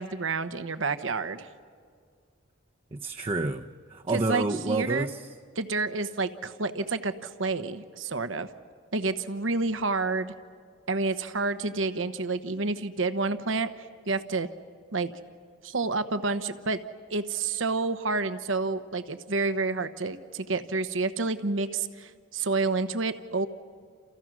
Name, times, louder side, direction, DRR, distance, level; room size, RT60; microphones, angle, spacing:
voice 1, 0.0-1.5 4.1-5.1 5.6-8.5 8.9-10.3 10.9-13.7 14.1-14.5 14.9-15.1 15.6-16.8 17.1-23.5, right 3 dB, 75° right, 10 dB, 1.0 m, -29 dB
voice 2, 2.9-5.3, right 2 dB, 30° right, 4 dB, 0.7 m, -29 dB
29.5 x 28.5 x 6.2 m, 2.1 s
head